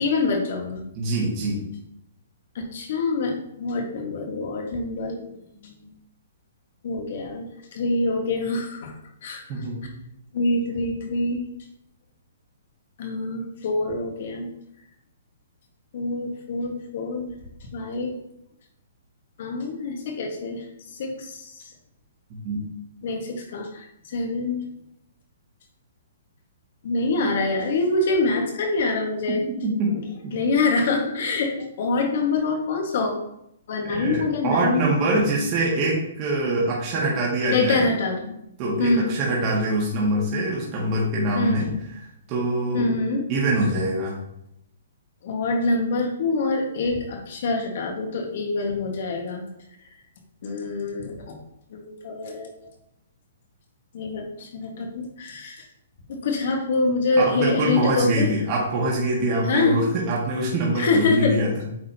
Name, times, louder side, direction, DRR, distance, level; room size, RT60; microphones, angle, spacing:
voice 1, 0.0-0.8 2.5-5.8 6.8-8.9 9.2-9.4 10.3-11.4 13.0-14.5 15.9-17.3 17.7-18.2 19.4-20.6 21.0-21.5 23.0-23.8 24.1-24.6 26.8-29.4 30.3-33.1 33.7-34.9 37.5-38.3 38.8-39.1 41.3-41.7 42.7-43.2 45.2-49.4 50.4-51.4 51.7-52.5 53.9-55.6 56.1-58.3 59.5-59.8 60.8-61.3, left 3 dB, 60° left, 3 dB, 1.5 m, -25 dB
voice 2, 1.0-1.6 9.5-9.9 22.4-22.6 29.6-30.0 33.9-37.9 38.6-41.7 42.3-42.9 43.3-44.2 57.2-61.5, right 1 dB, 30° right, -4 dB, 1.6 m, -24 dB
8.6 x 4.2 x 2.8 m, 0.78 s
hypercardioid pair, 150°, 0 cm